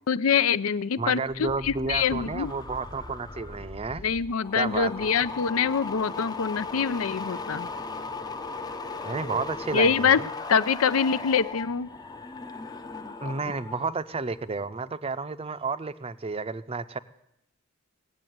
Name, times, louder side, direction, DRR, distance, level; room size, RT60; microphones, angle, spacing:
voice 1, 0.1-2.5 4.0-7.7 9.7-10.2 10.5-11.9, left 6 dB, 85° left, 16 dB, 0.5 m, -25 dB
voice 2, 1.0-4.1 4.6-5.1 9.0-10.3 13.2-17.0, right 4 dB, 30° right, 14 dB, 0.5 m, -31 dB
sound 1, 1.3-13.9 14.2-14.7, left 3 dB, 20° left, 0.6 m, -38 dB
17.5 x 8.3 x 9.3 m, 0.82 s
head